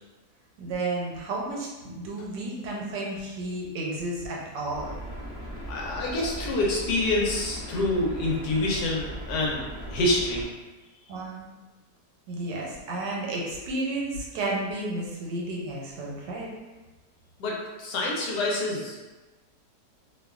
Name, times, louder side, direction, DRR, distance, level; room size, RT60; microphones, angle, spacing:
voice 1, 0.6-4.9 11.1-11.5 12.3-16.5, right 2 dB, 85° right, -3 dB, 1.2 m, -32 dB
sound 1, 4.7-10.5, right 1 dB, 25° left, 0.3 m, -38 dB
voice 2, 5.7-9.6 9.9-10.4 17.4-19.1, left 2 dB, 75° left, -3 dB, 1.1 m, -27 dB
2.8 x 2.2 x 2.3 m, 1.2 s
omnidirectional pair, 1.9 m